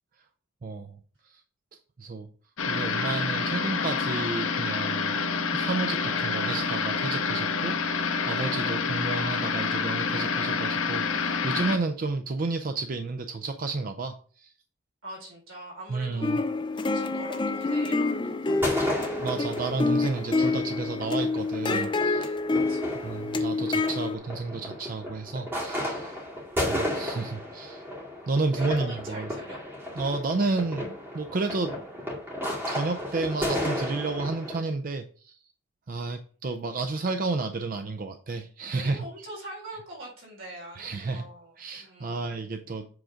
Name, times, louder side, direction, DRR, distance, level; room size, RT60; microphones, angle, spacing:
voice 1, 0.6-1.0 1.2-1.4 1.7-2.3 2.7-5.2 5.5-14.5 15.9-16.4 19.2-22.3 23.0-26.2 26.7-27.8 28.3-29.3 30.0-31.8 32.7-35.4 35.9-39.1 40.8-41.2 41.6-42.9, right 3 dB, 45° right, 7 dB, 0.5 m, -31 dB
sound 1, 2.6-11.8, left 5 dB, 85° left, 0.7 m, -28 dB
voice 2, 15.0-16.4 16.8-19.1 22.7-23.2 28.5-29.6 38.7-42.4, right 1 dB, 80° right, -3 dB, 4.0 m, -43 dB
sound 2, 16.2-24.2, left 3 dB, 25° left, 0.5 m, -27 dB
sound 3, 18.5-34.6, left 1 dB, 10° right, 2.2 m, -34 dB
7.7 x 3.7 x 5.0 m, 0.43 s
head